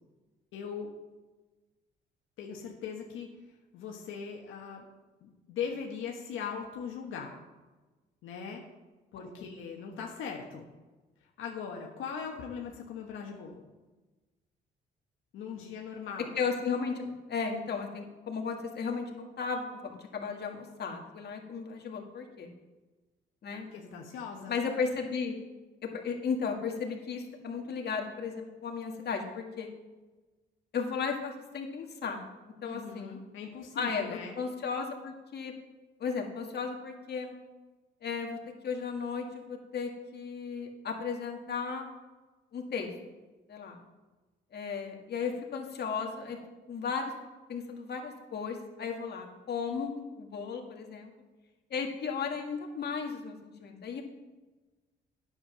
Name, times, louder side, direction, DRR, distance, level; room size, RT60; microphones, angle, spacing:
voice 1, 0.5-0.9 2.4-3.3 3.7-4.8 5.2-7.4 8.2-8.6 9.1-10.7 11.4-13.7 15.3-16.3 23.6-24.5 32.6-34.3, left 6 dB, 85° left, 0 dB, 1.4 m, -40 dB
voice 2, 16.4-22.5 23.4-23.7 24.5-25.4 26.0-29.7 30.7-32.2 32.6-33.2 33.8-35.5 36.0-37.3 38.0-38.4 38.6-41.9 42.5-42.9 43.5-43.8 44.5-46.4 46.7-47.1 47.5-51.1 51.7-54.0, left 5 dB, 55° left, 2 dB, 1.9 m, -35 dB
10.0 x 7.5 x 6.1 m, 1.2 s
cardioid pair, 90°, 20 cm